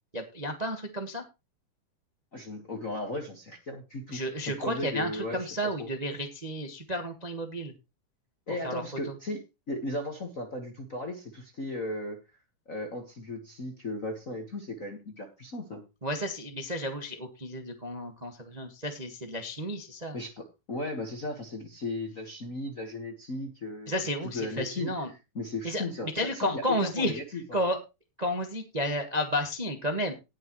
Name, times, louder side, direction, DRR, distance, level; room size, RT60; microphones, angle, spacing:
voice 1, 0.1-1.2 4.1-7.7 8.6-8.8 16.0-20.2 23.9-25.1 25.6-25.8 26.1-27.2 27.5-27.8 28.2-30.1, equal, 35° right, 4 dB, 0.6 m, -32 dB
voice 2, 2.3-5.9 8.5-9.4 9.7-12.2 12.7-15.8 20.1-27.6, left 2 dB, 45° left, 2 dB, 1.1 m, -36 dB
19.0 x 6.7 x 3.1 m, 0.26 s
omnidirectional pair, 3.7 m